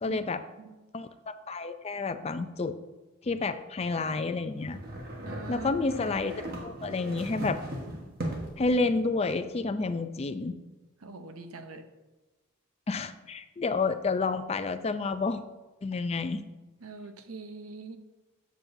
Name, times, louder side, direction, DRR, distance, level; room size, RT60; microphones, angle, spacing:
voice 1, 0.0-0.4 0.9-2.7 3.2-4.8 5.5-7.6 8.6-10.5 12.9-15.5 15.8-16.4, left 3 dB, 30° left, 10 dB, 0.4 m, -30 dB
sound 1, 4.6-8.7, right 1 dB, 45° right, 1.3 m, -38 dB
voice 2, 5.2-6.1 11.0-11.9 16.8-18.0, right 3 dB, 85° right, 8 dB, 0.8 m, -43 dB
12.5 x 7.4 x 2.7 m, 1.1 s
head